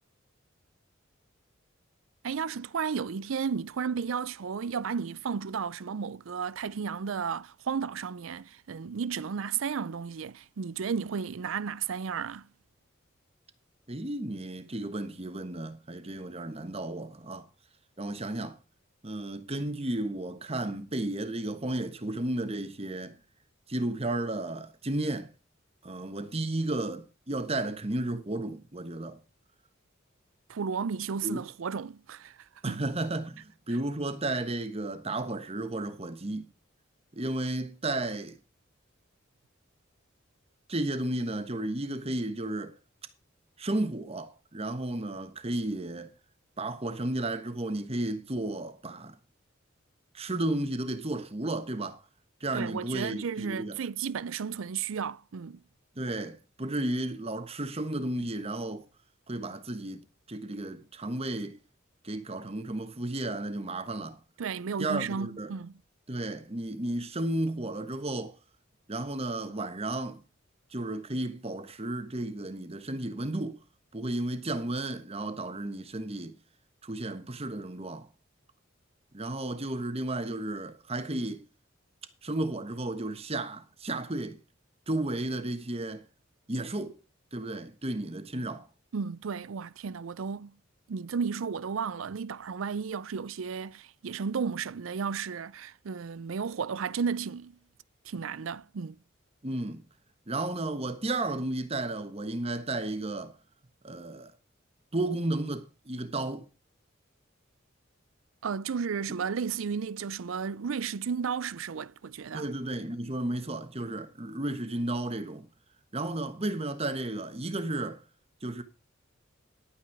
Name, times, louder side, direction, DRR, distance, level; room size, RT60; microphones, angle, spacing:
voice 1, 2.2-12.5 30.5-32.4 32.7-32.8 52.5-55.6 64.4-65.8 86.8-86.9 88.9-90.6 90.9-97.6 98.0-99.0 108.4-112.5, right 6 dB, 80° right, 0.5 m, -33 dB
voice 2, 13.9-17.5 18.0-18.6 19.0-23.2 23.7-25.3 25.8-29.2 31.2-31.4 32.6-36.4 37.1-38.4 40.7-42.7 43.6-46.1 46.6-49.2 50.1-52.0 52.4-53.8 56.0-58.8 59.3-61.6 62.0-64.2 64.8-65.5 66.1-68.3 68.9-70.2 70.7-73.6 73.9-76.4 76.8-78.1 79.1-81.5 82.2-84.4 84.9-86.0 86.5-87.0 87.3-88.7 99.4-99.8 100.3-103.3 103.8-104.3 104.9-106.5 112.3-115.5 115.9-118.0 118.4-118.6, right 2 dB, 30° right, 1.2 m, -33 dB
11.5 x 8.8 x 4.8 m
head